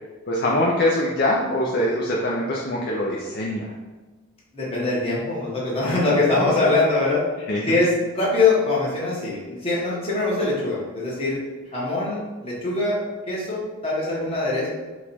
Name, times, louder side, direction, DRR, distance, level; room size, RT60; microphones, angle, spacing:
voice 1, 0.3-3.7 5.8-6.0 7.5-7.8, left 1 dB, 45° left, -3 dB, 0.5 m, -23 dB
voice 2, 4.5-7.2 7.7-11.4 11.7-13.0 13.3-14.7, left 3 dB, 25° left, -6 dB, 1.2 m, -23 dB
4.7 x 2.3 x 4.2 m, 1.3 s
head